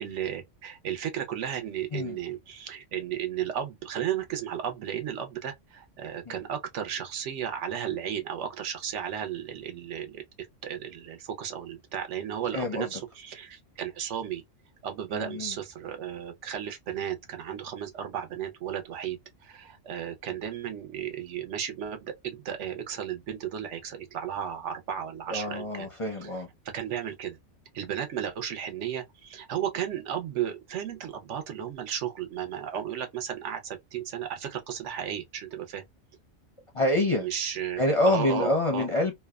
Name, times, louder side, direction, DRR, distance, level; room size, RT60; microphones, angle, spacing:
voice 1, 0.0-10.2 10.6-14.4 14.8-25.9 26.2-26.3 26.7-27.4 27.7-35.8 37.2-38.9, right 9 dB, 75° right, 0.9 m, -34 dB
voice 2, 12.5-12.9 15.1-15.6 25.3-26.5 36.7-37.3 37.8-39.1, left 1 dB, 40° left, 0.5 m, -26 dB
2.6 x 2.1 x 2.2 m
omnidirectional pair, 1.3 m